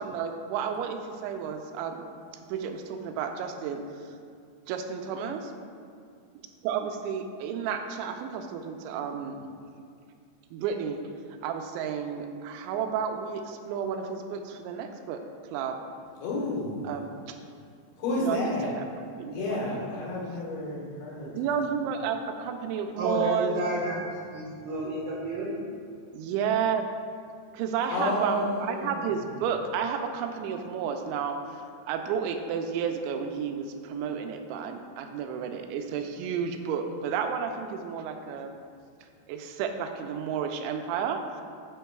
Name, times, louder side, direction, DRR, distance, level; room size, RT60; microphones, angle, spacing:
voice 1, 0.0-2.1 2.5-3.8 4.7-5.5 6.6-9.5 10.5-11.0 11.4-15.2 15.5-15.8 16.8-17.4 18.2-19.8 21.2-23.6 23.8-23.9 26.1-26.8 27.5-38.5 39.3-41.4, right 7 dB, 90° right, 6 dB, 2.9 m, -32 dB
voice 2, 16.2-16.8 18.0-18.7 19.3-21.3 27.9-29.1, left 1 dB, 80° left, -5 dB, 3.8 m, -30 dB
voice 3, 23.0-25.6, right 1 dB, 75° right, -4 dB, 2.4 m, -31 dB
9.9 x 7.2 x 2.3 m, 2.3 s
omnidirectional pair, 5.2 m